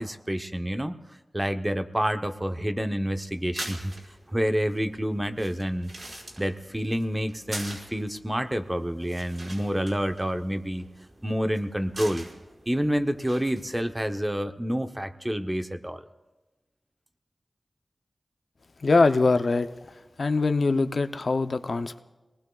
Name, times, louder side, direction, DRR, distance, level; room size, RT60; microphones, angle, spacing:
voice 1, 0.0-3.9 4.3-5.9 6.4-10.9 11.2-12.3 12.7-16.0, equal, 15° right, 8 dB, 0.8 m, -28 dB
sound 1, 3.3-14.1, right 1 dB, 55° right, 5.0 m, -44 dB
voice 2, 18.8-19.7 20.2-22.0, left 3 dB, 65° left, 9 dB, 0.6 m, -23 dB
25.5 x 19.5 x 2.3 m, 1.1 s
wide cardioid pair, 60°, 0 cm